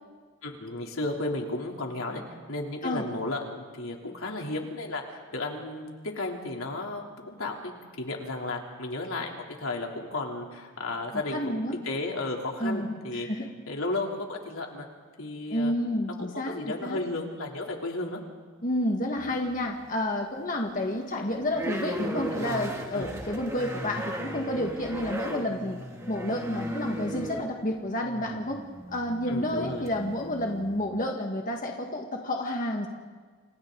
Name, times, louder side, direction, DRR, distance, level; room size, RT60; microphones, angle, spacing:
voice 1, 0.4-2.2 2.5-7.7 8.0-13.3 13.7-14.9 15.2-15.7 16.2-18.2 22.9-23.1 29.3-29.8, left 2 dB, 75° left, 0 dB, 3.3 m, -34 dB
voice 2, 11.1-11.7 12.6-13.5 15.5-17.0 18.6-25.8 26.1-28.6 28.9-32.9, left 1 dB, 40° left, 1 dB, 1.7 m, -30 dB
sound 1, 19.1-19.9 20.3-30.9, equal, 15° right, 2.3 m, -37 dB
29.0 x 28.5 x 4.0 m, 1.5 s
head